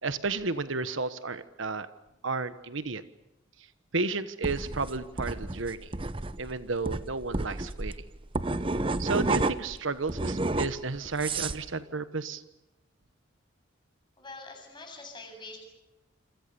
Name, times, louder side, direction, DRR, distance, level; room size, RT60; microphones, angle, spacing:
voice 1, 0.0-1.9 2.2-3.0 3.9-5.9 6.4-7.9 9.0-12.4, right 3 dB, 70° right, 12 dB, 1.2 m, -32 dB
sound 1, 4.4-9.8 10.1-11.6, right 2 dB, 25° right, 0.8 m, -30 dB
voice 2, 14.2-15.6, left 3 dB, 20° left, 3 dB, 8.0 m, -44 dB
28.5 x 26.5 x 6.9 m, 0.96 s
head